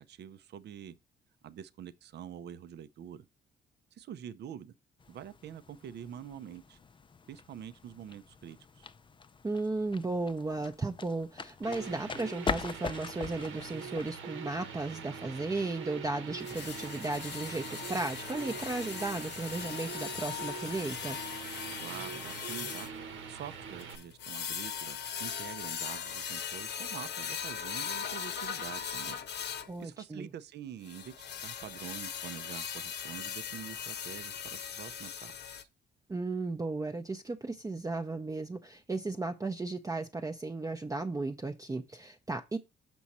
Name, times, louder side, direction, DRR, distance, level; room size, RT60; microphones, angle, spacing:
voice 1, 0.1-1.0 1.4-3.3 3.9-4.7 5.1-6.8 7.3-8.9 21.8-22.9 23.3-35.7, right 9 dB, 60° right, 0.6 m, -46 dB
sound 1, 5.0-14.2, left 5 dB, 25° left, 0.4 m, -42 dB
voice 2, 9.4-21.2 29.7-30.3 36.1-42.6, right 3 dB, 15° right, 0.6 m, -35 dB
sound 2, 11.6-23.9, right 6 dB, 80° right, 1.1 m, -44 dB
sound 3, 16.4-29.7 30.8-35.6, left 8 dB, 60° left, 1.0 m, -39 dB
6.2 x 6.0 x 4.1 m
cardioid pair, 90°, 20 cm